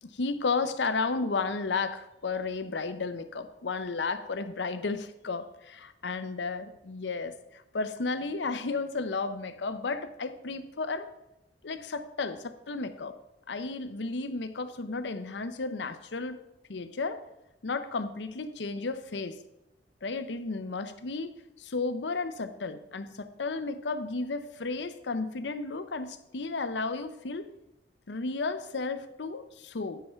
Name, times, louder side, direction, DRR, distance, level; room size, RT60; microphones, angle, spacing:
voice 1, 0.0-11.1 11.6-13.2 13.5-17.2 17.6-19.4 20.0-27.5 28.1-30.0, left 3 dB, 75° left, 11 dB, 0.7 m, -33 dB
9.6 x 5.6 x 5.6 m, 0.90 s
head